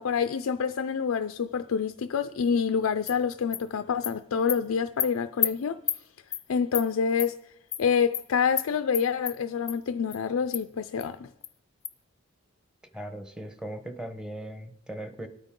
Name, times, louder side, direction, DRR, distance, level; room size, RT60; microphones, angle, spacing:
voice 1, 0.0-5.8 6.5-7.4 7.8-11.3, left 6 dB, 90° left, 0.4 m, -27 dB
Animal, 3.1-3.2 3.5-3.6 4.0-4.1 4.5-4.6 5.0-5.1 5.4-5.5 5.9-6.0 6.3-6.4 6.7-6.9 7.2-7.3 7.7-7.8 8.1-8.2 8.6-8.7 8.9-9.3 9.7-9.8 10.1-10.2 10.5-10.6 11.0-11.1 11.4-11.5 11.8-11.9, left 9 dB, 20° left, 0.4 m, -29 dB
voice 2, 12.9-15.3, right 1 dB, 5° right, 0.9 m, -38 dB
25.5 x 9.0 x 3.7 m
head